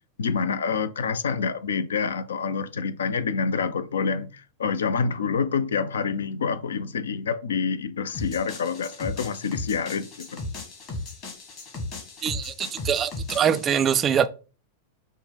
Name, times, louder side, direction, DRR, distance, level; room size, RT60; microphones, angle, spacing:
voice 1, 0.2-10.4, left 5 dB, 65° left, 0.4 m, -27 dB
sound 1, 8.1-13.6, left 2 dB, 35° left, 1.6 m, -36 dB
voice 2, 12.2-14.3, right 8 dB, 25° right, 0.3 m, -23 dB
5.3 x 2.1 x 3.9 m
figure-of-eight pair, 90°, 0 cm